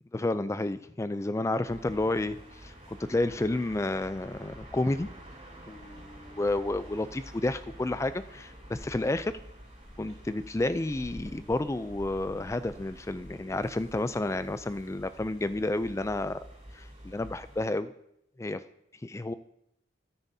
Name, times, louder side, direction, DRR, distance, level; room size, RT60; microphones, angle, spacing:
voice 1, 0.1-5.1 5.7-9.3 10.0-16.4 16.7-17.9 18.4-18.6 19.0-19.3, left 2 dB, 15° left, 13 dB, 0.3 m, -31 dB
sound 1, 1.6-17.7, equal, 30° right, 4.6 m, -48 dB
13.0 x 9.4 x 2.7 m, 0.76 s
head